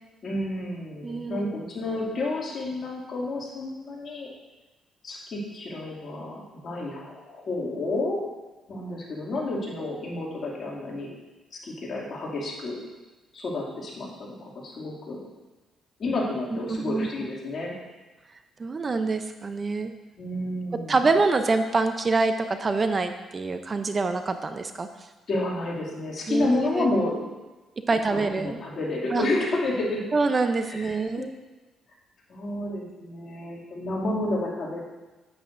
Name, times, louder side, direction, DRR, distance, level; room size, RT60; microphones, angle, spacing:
voice 1, 0.2-4.3 5.0-8.2 8.7-11.1 11.6-12.8 13.3-15.2 16.0-17.7 20.2-21.0 25.3-27.3 28.1-30.0 30.6-31.3 32.3-34.8, left 2 dB, 50° left, -4 dB, 2.4 m, -30 dB
voice 2, 1.0-1.6 16.5-17.3 18.6-19.9 20.9-24.9 26.3-26.9 27.9-28.6 29.1-29.3 30.1-31.3, right 3 dB, 35° right, 8 dB, 0.5 m, -26 dB
9.0 x 8.2 x 2.6 m, 1.2 s
cardioid pair, 90°, 0 cm